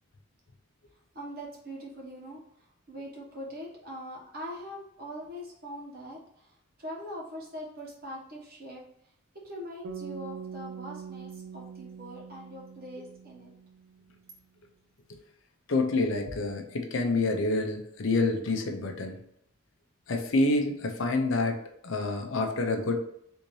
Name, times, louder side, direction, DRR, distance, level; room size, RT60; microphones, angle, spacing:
voice 1, 1.1-8.8 9.4-13.5, equal, 45° right, -3 dB, 1.1 m, -42 dB
sound 1, 9.8-14.1, right 6 dB, 80° right, 0.4 m, -43 dB
voice 2, 15.7-19.2 20.1-23.0, left 2 dB, 65° left, 3 dB, 0.6 m, -27 dB
3.5 x 2.7 x 3.1 m, 0.74 s
head